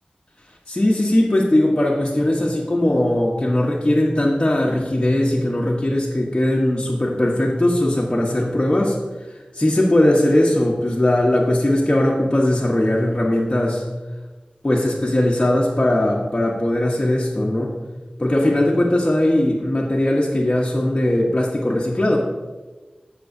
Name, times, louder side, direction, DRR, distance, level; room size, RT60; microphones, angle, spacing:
voice 1, 0.7-9.0 9.3-13.8 14.6-17.8 18.2-22.2, left 1 dB, 30° left, -4 dB, 1.1 m, -19 dB
15.5 x 5.9 x 2.7 m, 1.2 s
wide cardioid pair, 70°, 3 cm